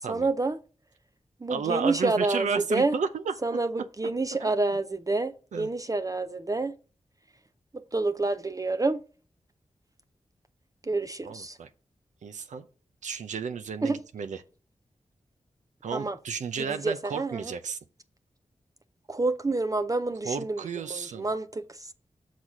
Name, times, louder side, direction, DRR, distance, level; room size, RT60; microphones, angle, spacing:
voice 1, 0.1-0.6 1.4-2.9 3.4-6.8 7.9-9.0 10.9-11.6 13.8-14.0 15.9-16.2 16.6-17.5 19.1-21.6, right 3 dB, 30° right, 0.5 m, -28 dB
voice 2, 1.5-3.3 4.4-4.8 5.5-5.7 11.2-11.7 12.2-12.6 13.0-14.4 15.8-17.8 20.2-21.3, right 6 dB, 85° right, 0.5 m, -32 dB
6.2 x 4.1 x 5.9 m
cardioid pair, 40°, 12 cm